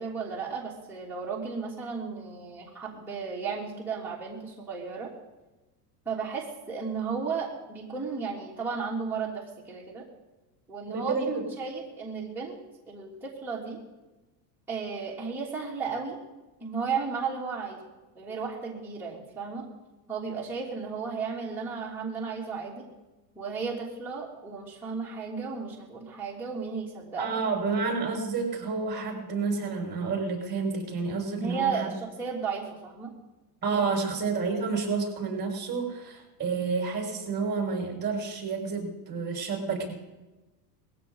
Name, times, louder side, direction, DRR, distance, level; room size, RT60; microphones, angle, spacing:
voice 1, 0.0-5.1 6.0-10.0 10.7-11.2 11.6-12.6 12.9-13.8 14.7-16.2 16.6-17.8 18.1-19.7 20.1-22.9 23.3-27.4 31.3-33.1 33.7-33.8, right 5 dB, 5° right, -7 dB, 3.0 m, -34 dB
voice 2, 10.9-11.4 27.2-31.9 33.6-39.9, right 4 dB, 20° right, 0 dB, 5.8 m, -30 dB
20.5 x 16.0 x 4.0 m, 1.1 s
supercardioid pair, 150°, 48 cm